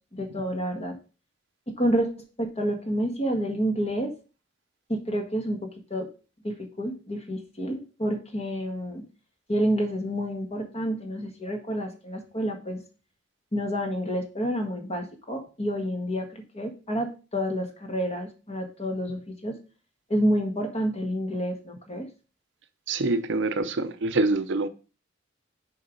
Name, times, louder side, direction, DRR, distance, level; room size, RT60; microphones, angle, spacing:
voice 1, 0.1-0.9 1.7-2.1 2.4-4.1 4.9-6.1 6.4-9.0 9.5-12.8 13.5-19.6 20.1-22.1, equal, 30° left, 1.6 m, -29 dB
voice 2, 22.9-24.7, right 2 dB, 65° right, 0.7 m, -25 dB
6.9 x 5.0 x 5.2 m
head